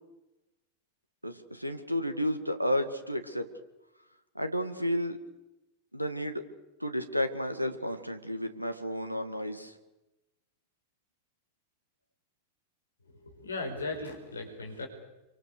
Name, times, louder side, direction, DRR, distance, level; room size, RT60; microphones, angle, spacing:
voice 1, 1.2-3.5 4.4-5.2 5.9-6.4 6.8-9.7, equal, 90° right, 9 dB, 1.9 m, -32 dB
voice 2, 13.0-14.9, left 2 dB, 75° left, 4 dB, 5.4 m, -37 dB
28.0 x 24.0 x 6.8 m, 0.97 s
figure-of-eight pair, 90°, 0 cm